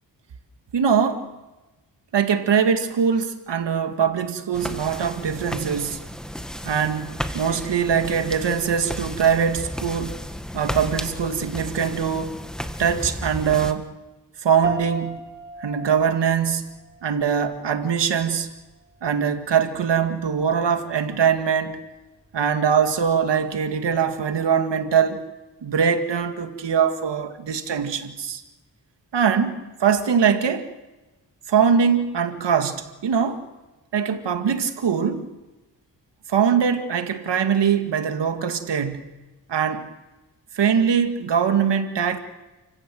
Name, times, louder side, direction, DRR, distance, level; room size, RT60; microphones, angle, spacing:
voice 1, 0.7-1.3 2.1-6.1 6.6-10.2 10.5-12.4 12.8-13.9 14.4-15.2 15.6-16.7 17.0-18.5 19.0-21.8 22.3-25.2 25.6-28.4 29.1-30.7 31.5-33.4 33.9-35.3 36.3-39.2 39.5-39.9 40.5-42.2, right 7 dB, 85° right, 2.1 m, -22 dB
sound 1, 4.5-13.7, equal, ahead, 1.9 m, -33 dB
sound 2, 14.6-24.2, right 3 dB, 30° right, 4.9 m, -37 dB
29.5 x 15.5 x 7.8 m
cardioid pair, 70°, 41 cm